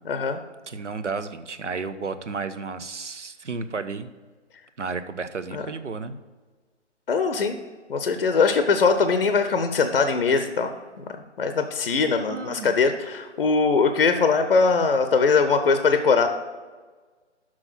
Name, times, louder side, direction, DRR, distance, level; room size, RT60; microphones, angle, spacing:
voice 1, 0.1-0.4 5.5-5.6 7.1-7.6 7.9-11.0 11.4-16.3, left 4 dB, 50° left, 8 dB, 0.7 m, -21 dB
voice 2, 0.7-4.1 4.8-6.2 12.2-12.7, right 4 dB, 80° right, 11 dB, 0.8 m, -32 dB
6.2 x 6.0 x 5.9 m, 1.4 s
figure-of-eight pair, 140°, 36 cm